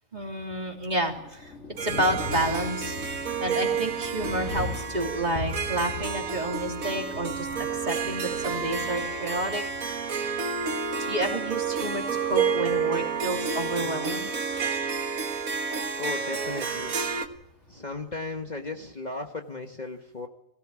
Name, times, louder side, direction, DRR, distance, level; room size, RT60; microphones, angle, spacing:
voice 1, 0.1-2.9 3.4-9.6 11.0-14.3, right 1 dB, 30° right, 1 dB, 3.4 m, -30 dB
Thunder, 0.7-18.7, left 2 dB, 55° left, 3.5 m, -41 dB
Harp, 1.8-17.3, right 5 dB, 85° right, 1.8 m, -30 dB
voice 2, 16.0-17.0 17.7-20.3, left 3 dB, 35° left, 3 dB, 1.4 m, -36 dB
22.5 x 17.5 x 8.7 m, 0.85 s
omnidirectional pair, 1.4 m